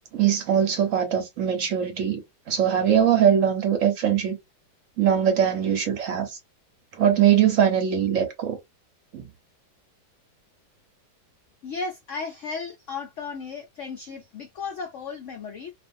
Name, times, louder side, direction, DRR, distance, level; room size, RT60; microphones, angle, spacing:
voice 1, 0.1-2.2 2.5-4.4 5.0-6.4 6.9-8.6 9.1-9.3, right 9 dB, 60° right, 0.9 m, -21 dB
voice 2, 11.6-15.7, left 4 dB, 80° left, 0.6 m, -35 dB
2.5 x 2.5 x 2.5 m
omnidirectional pair, 1.9 m